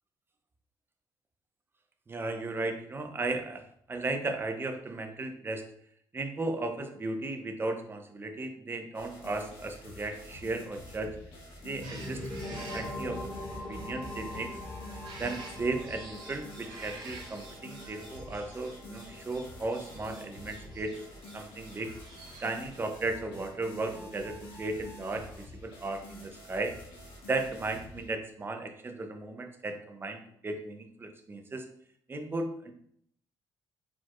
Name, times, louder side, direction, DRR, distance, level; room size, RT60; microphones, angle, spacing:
voice 1, 2.1-5.6 6.1-11.1 11.6-13.4 13.7-14.5 15.2-20.9 21.3-21.9 22.4-26.8 27.3-31.7 32.1-32.7, right 2 dB, 25° right, 5 dB, 0.7 m, -35 dB
sound 1, 8.9-28.1, left 1 dB, 80° left, 1.3 m, -48 dB
sound 2, 11.8-21.3, left 1 dB, 40° left, 1.4 m, -43 dB
sound 3, 11.8-22.8, right 2 dB, 55° right, 1.7 m, -50 dB
4.5 x 4.2 x 2.4 m, 0.65 s
cardioid pair, 90°, 9 cm